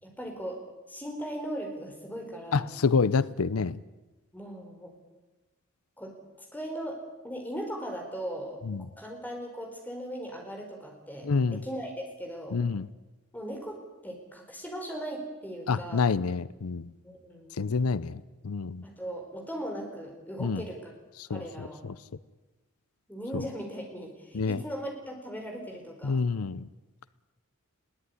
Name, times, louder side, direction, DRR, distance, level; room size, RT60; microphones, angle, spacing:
voice 1, 0.0-2.7 4.3-5.0 6.0-6.1 6.5-8.6 9.0-12.6 13.3-16.1 17.0-17.5 18.8-21.0 21.3-21.8 23.1-26.2, equal, 10° left, 2 dB, 4.5 m, -38 dB
voice 2, 2.5-3.8 8.7-8.8 11.2-11.6 12.5-12.9 15.7-16.9 17.6-18.8 20.4-20.6 21.3-21.4 24.3-24.6 26.0-26.6, left 4 dB, 85° left, 18 dB, 0.6 m, -27 dB
21.0 x 17.0 x 9.8 m, 1.1 s
head